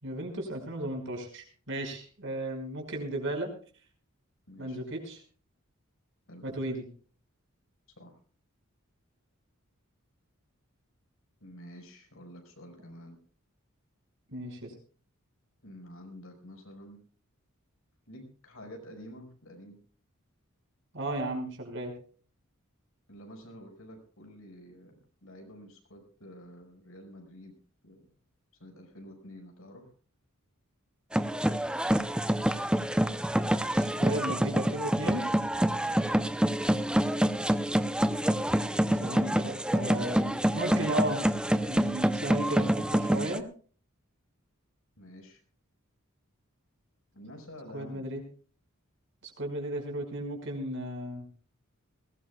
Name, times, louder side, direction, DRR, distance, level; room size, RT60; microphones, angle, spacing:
voice 1, 0.0-3.5 4.6-5.2 6.4-6.8 14.3-14.7 20.9-21.9 33.8-35.3 39.0-41.2 41.7-43.5 47.7-48.2 49.2-51.3, right 1 dB, 60° right, 2 dB, 5.5 m, -35 dB
voice 2, 4.5-4.8 6.3-6.4 8.0-8.2 11.4-13.2 15.6-17.0 18.1-19.8 23.1-24.9 25.2-27.5 27.8-28.0 28.6-29.9 45.0-45.4 47.1-48.1, equal, 70° left, 4 dB, 5.4 m, -49 dB
sound 1, 31.1-43.4, equal, 5° right, 0.6 m, -27 dB
21.0 x 19.0 x 2.3 m, 0.42 s
head